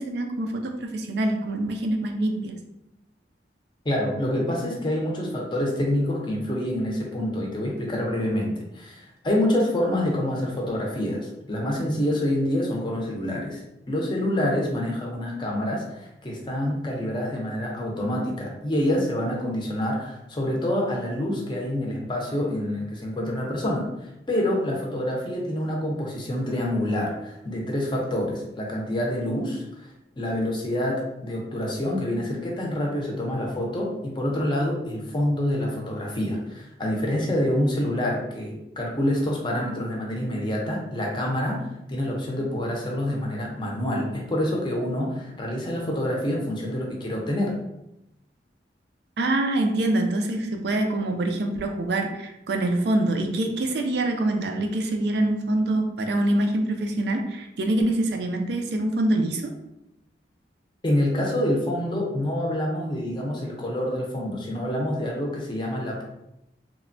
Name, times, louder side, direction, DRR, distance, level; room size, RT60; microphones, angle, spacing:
voice 1, 0.0-2.5 49.2-59.5, right 1 dB, 65° right, 4 dB, 0.4 m, -25 dB
voice 2, 3.8-29.6 30.2-47.5 60.8-66.0, left 1 dB, 25° left, -1 dB, 0.5 m, -27 dB
3.1 x 2.1 x 2.5 m, 0.86 s
head